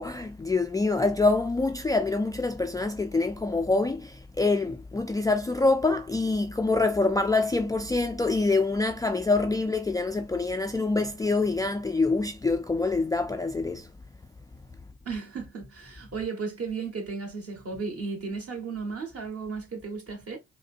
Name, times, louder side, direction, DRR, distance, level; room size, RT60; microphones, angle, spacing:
voice 1, 0.0-13.9, left 3 dB, 10° left, 0.4 m, -25 dB
voice 2, 15.0-20.4, right 4 dB, 45° right, 1.6 m, -34 dB
4.8 x 2.1 x 2.5 m
hypercardioid pair, 45°, 32 cm